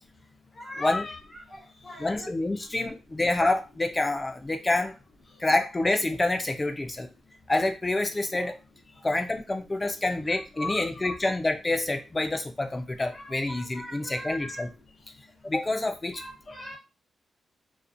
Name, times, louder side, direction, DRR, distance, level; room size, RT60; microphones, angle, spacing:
voice 1, 0.6-1.6 1.8-2.3 10.3-11.3 13.1-14.6 16.1-16.8, left 2 dB, 50° left, -2 dB, 0.6 m, -39 dB
voice 2, 2.0-4.9 5.4-7.1 7.5-8.5 9.0-14.7 15.4-16.2, left 2 dB, 15° left, 7 dB, 0.3 m, -27 dB
2.5 x 2.0 x 2.5 m, 0.28 s
wide cardioid pair, 145°, 0 cm